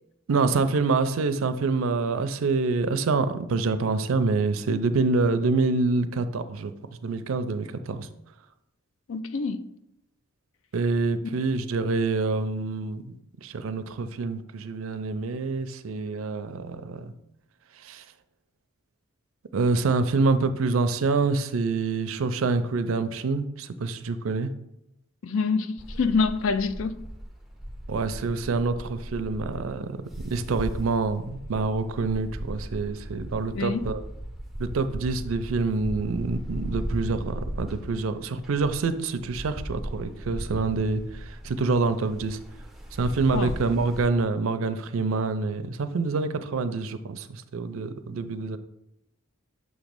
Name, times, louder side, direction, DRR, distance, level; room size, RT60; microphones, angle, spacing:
voice 1, 0.3-6.7 7.0-8.1 10.7-13.0 13.4-17.1 17.8-18.0 19.5-24.5 27.9-34.0 34.6-42.4 42.9-48.6, right 3 dB, 75° right, 0.4 m, -26 dB
voice 2, 9.1-9.7 25.2-26.9 33.5-33.8 43.3-43.5, left 4 dB, 65° left, 0.4 m, -26 dB
sound 1, 25.8-44.1, equal, ahead, 0.5 m, -37 dB
6.3 x 3.1 x 5.1 m
head